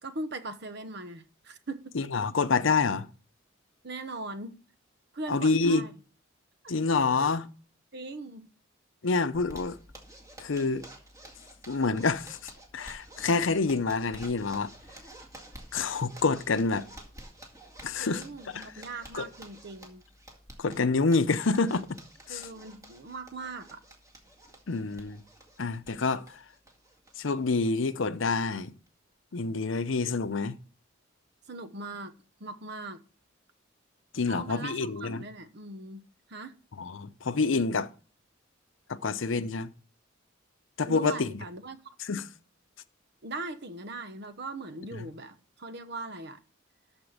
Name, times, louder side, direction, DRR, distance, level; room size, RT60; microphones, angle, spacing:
voice 1, 0.0-2.0 3.8-4.6 5.1-5.9 6.6-6.7 7.2-7.3 7.9-8.5 18.0-20.0 22.3-23.8 31.5-32.1 32.4-33.0 34.3-36.0 36.3-36.6 40.8-41.8 43.2-46.4, right 2 dB, 55° right, 1.0 m, -40 dB
voice 2, 1.9-3.1 5.3-5.8 6.7-7.5 9.0-9.8 10.4-10.8 11.7-12.4 12.7-14.7 15.7-16.9 17.8-18.7 19.1-19.3 20.6-22.0 22.3-22.5 24.7-25.2 25.6-26.4 27.2-28.7 29.3-30.6 34.1-35.3 36.8-37.9 38.9-39.7 40.8-41.3 42.0-42.3 44.9-45.1, left 4 dB, 75° left, 0.7 m, -27 dB
Zipper (clothing), 9.3-27.5 27.8-27.9 28.3-28.4 28.7-29.1, right 1 dB, 15° right, 2.0 m, -51 dB
13.0 x 4.5 x 6.5 m
head